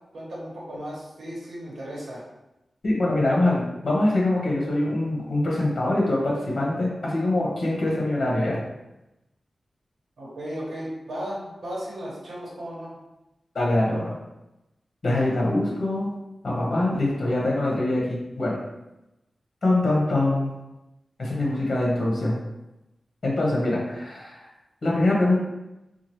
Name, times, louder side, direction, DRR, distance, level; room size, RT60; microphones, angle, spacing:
voice 1, 0.1-2.2 10.2-13.0, equal, 80° right, -5 dB, 1.1 m, -35 dB
voice 2, 2.8-8.6 13.5-14.1 15.0-16.1 16.4-18.6 19.6-20.5 21.2-22.3 23.2-24.5 24.8-25.4, left 2 dB, 55° left, -4 dB, 1.1 m, -23 dB
4.6 x 2.4 x 3.0 m, 0.94 s
wide cardioid pair, 120°, 0 cm